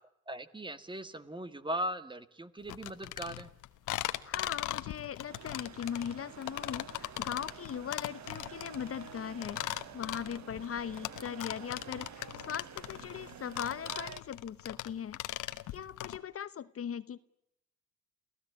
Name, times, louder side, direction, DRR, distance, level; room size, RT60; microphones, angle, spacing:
voice 1, 0.3-3.5, right 1 dB, 15° right, 12 dB, 1.8 m, -39 dB
sound 1, 2.7-16.2, left 14 dB, 85° left, 1.2 m, -39 dB
voice 2, 4.0-15.2 15.7-17.2, left 8 dB, 50° left, 15 dB, 0.9 m, -39 dB
sound 2, 5.3-14.2, right 9 dB, 65° right, 1.4 m, -50 dB
29.0 x 16.5 x 8.5 m, 0.82 s
cardioid pair, 90°, 30 cm